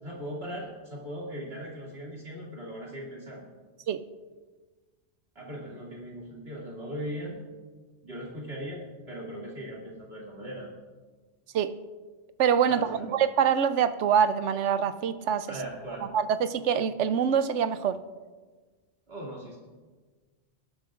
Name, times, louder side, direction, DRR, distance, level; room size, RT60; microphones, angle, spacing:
voice 1, 0.0-3.4 5.3-7.4 8.0-10.7 12.7-13.1 15.5-16.1 19.1-19.6, equal, 60° right, -5 dB, 2.8 m, -39 dB
voice 2, 12.4-15.5 16.1-18.0, right 8 dB, 85° right, 12 dB, 1.0 m, -25 dB
20.0 x 12.5 x 2.5 m, 1.4 s
omnidirectional pair, 1.2 m